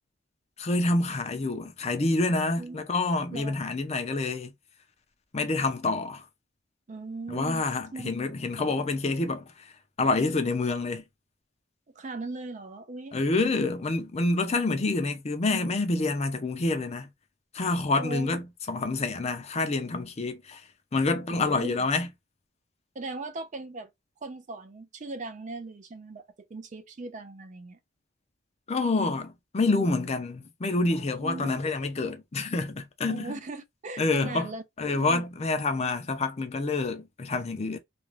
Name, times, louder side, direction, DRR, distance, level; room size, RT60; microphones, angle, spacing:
voice 1, 0.6-4.5 5.3-6.2 7.3-9.4 10.0-11.0 13.1-17.1 17.5-20.6 20.9-22.1 28.7-33.3 34.0-34.5 34.8-37.8, left 3 dB, 30° left, 0.5 m, -27 dB
voice 2, 6.9-7.6 7.9-8.1 8.6-8.7 12.0-13.2 17.9-18.4 21.3-21.9 22.9-23.9 24.2-27.8 31.2-31.6 33.1-34.6 34.9-35.2, right 3 dB, 35° right, 0.4 m, -39 dB
2.5 x 2.2 x 3.1 m
head